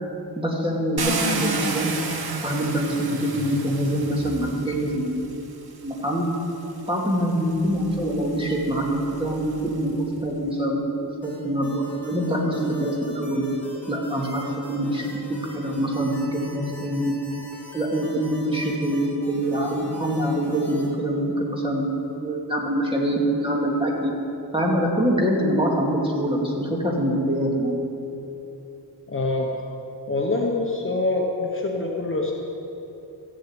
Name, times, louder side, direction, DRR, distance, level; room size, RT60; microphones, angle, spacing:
voice 1, 0.4-2.0 2.4-5.2 5.8-6.3 6.9-13.5 13.9-17.2 17.7-21.9 22.2-24.1 24.5-27.8, equal, 10° right, -3 dB, 2.2 m, -24 dB
Car, 1.0-5.1 6.0-6.1 6.7-9.9, right 3 dB, 60° right, 1.2 m, -31 dB
sound 1, 11.2-20.9, equal, 5° left, 4.0 m, -43 dB
voice 2, 29.1-29.5 30.1-32.3, left 2 dB, 30° left, -1 dB, 1.1 m, -25 dB
14.5 x 7.6 x 8.7 m, 2.9 s
wide cardioid pair, 145°, 42 cm